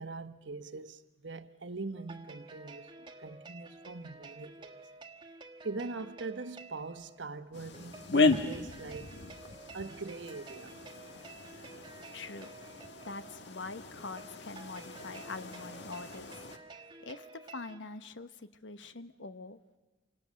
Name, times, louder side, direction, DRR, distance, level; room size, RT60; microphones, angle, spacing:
voice 1, 0.0-4.8 5.6-9.1 9.7-10.8, right 3 dB, 75° right, 1.2 m, -42 dB
sound 1, 2.0-17.8, right 3 dB, 25° right, 1.5 m, -51 dB
sound 2, 7.5-16.6, left 3 dB, 65° left, 1.7 m, -35 dB
voice 2, 12.1-12.5 13.0-16.3 17.0-19.8, left 3 dB, 80° left, 1.2 m, -44 dB
29.0 x 26.5 x 6.5 m
head